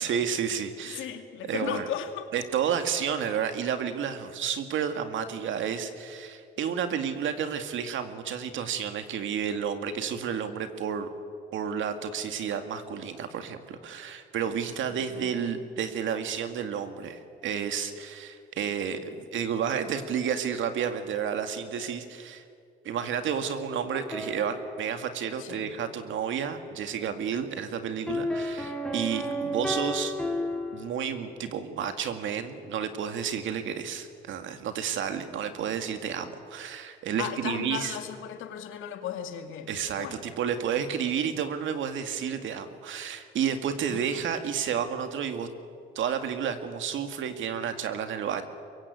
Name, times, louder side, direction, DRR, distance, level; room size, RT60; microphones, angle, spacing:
voice 1, 0.0-1.1 1.4-1.9 2.3-11.1 11.5-22.4 22.8-30.1 30.7-38.0 39.7-45.5 46.0-48.4, right 7 dB, 75° right, 8 dB, 2.2 m, -31 dB
voice 2, 0.9-2.3 14.9-15.3 25.4-25.8 37.2-40.3 43.9-44.3, left 9 dB, 85° left, 6 dB, 2.3 m, -37 dB
sound 1, 23.9-25.6 28.1-31.3, equal, 5° left, 3.4 m, -33 dB
24.5 x 22.5 x 8.4 m, 2.3 s
cardioid pair, 90°, 20 cm